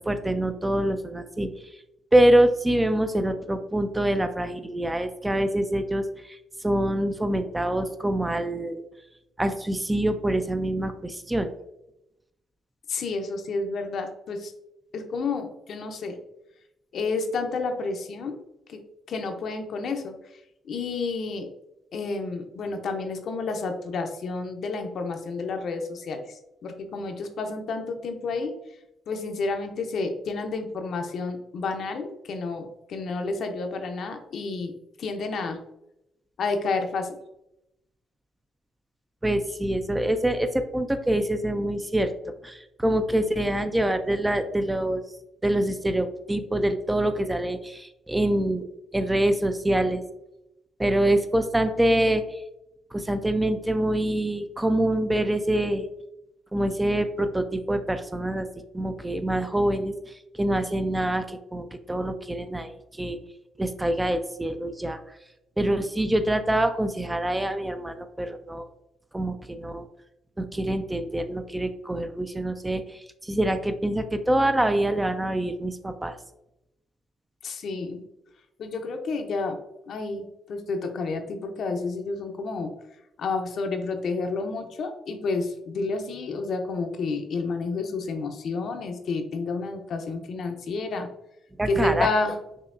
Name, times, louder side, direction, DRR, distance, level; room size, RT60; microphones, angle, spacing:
voice 1, 0.1-1.5 2.1-8.8 9.4-11.5 39.2-42.1 42.4-45.0 45.4-48.7 48.9-50.0 50.8-52.4 52.9-55.9 56.5-58.5 58.7-63.2 63.6-65.0 65.6-68.7 69.1-69.9 70.4-76.2 91.6-92.1, right 1 dB, 10° right, 9 dB, 0.3 m, -25 dB
voice 2, 12.9-14.5 14.9-16.2 16.9-18.4 18.7-18.8 19.1-20.1 20.6-21.5 21.9-28.5 29.1-34.7 35.0-35.6 36.4-37.2 77.4-78.0 78.6-79.6 79.9-82.7 83.2-91.1 91.7-92.4, left 3 dB, 65° left, 5 dB, 0.6 m, -30 dB
5.4 x 2.8 x 2.5 m, 0.86 s
cardioid pair, 90°, 0 cm